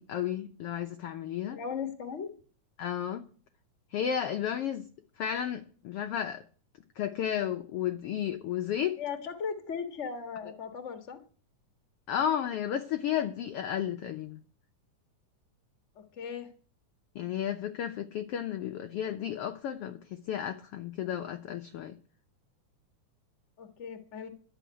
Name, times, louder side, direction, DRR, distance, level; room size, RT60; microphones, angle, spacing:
voice 1, 0.0-1.6 2.8-3.2 3.9-4.9 5.2-6.4 7.0-9.0 12.1-14.4 17.1-21.9, left 9 dB, 70° left, 1.5 m, -33 dB
voice 2, 1.5-2.3 9.0-11.2 16.2-16.5 23.6-24.3, left 6 dB, 30° left, 1.3 m, -37 dB
13.0 x 7.1 x 9.6 m
omnidirectional pair, 3.4 m